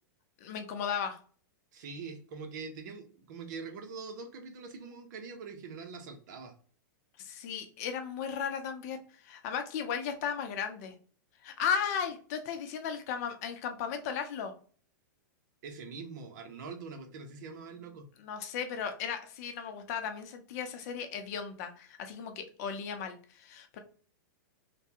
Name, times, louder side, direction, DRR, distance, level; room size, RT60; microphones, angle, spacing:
voice 1, 0.4-1.2 7.2-9.0 9.2-10.9 11.4-14.5 18.2-23.8, left 7 dB, 50° left, 7 dB, 0.7 m, -35 dB
voice 2, 1.7-6.5 15.6-18.1, right 4 dB, 60° right, 5 dB, 0.9 m, -43 dB
3.4 x 2.3 x 2.8 m, 0.43 s
hypercardioid pair, 140°, 11 cm